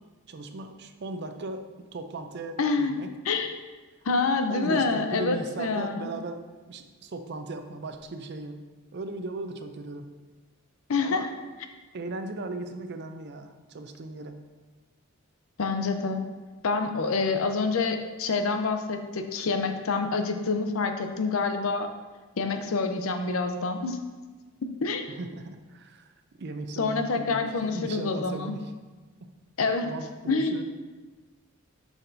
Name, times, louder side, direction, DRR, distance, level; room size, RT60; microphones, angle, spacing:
voice 1, 0.3-3.1 4.5-6.4 6.7-8.6 8.9-10.1 11.0-11.3 11.9-14.4 25.2-26.1 26.4-28.6 29.8-30.6, right 2 dB, 55° right, 7 dB, 0.5 m, -37 dB
voice 2, 2.6-3.0 3.2-3.5 4.1-6.1 10.9-11.3 15.6-16.2 16.6-21.9 22.4-24.0 24.8-25.0 26.8-28.5 29.6-29.9 30.3-30.6, left 4 dB, 75° left, 6 dB, 0.6 m, -27 dB
6.6 x 5.9 x 2.6 m, 1.3 s
head